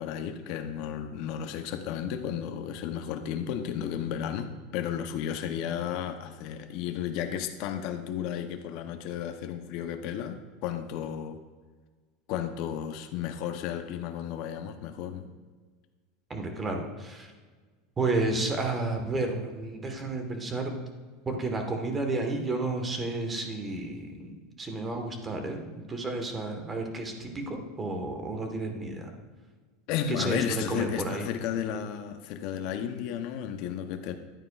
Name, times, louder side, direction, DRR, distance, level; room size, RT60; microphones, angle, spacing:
voice 1, 0.0-11.4 12.3-15.3 29.9-34.2, left 9 dB, 55° left, 7 dB, 0.7 m, -33 dB
voice 2, 16.3-17.3 18.0-20.7 21.2-24.3 24.6-29.1 30.1-31.3, right 2 dB, 20° right, 4 dB, 1.3 m, -31 dB
11.0 x 9.2 x 2.4 m, 1.4 s
supercardioid pair, 135°, 0 cm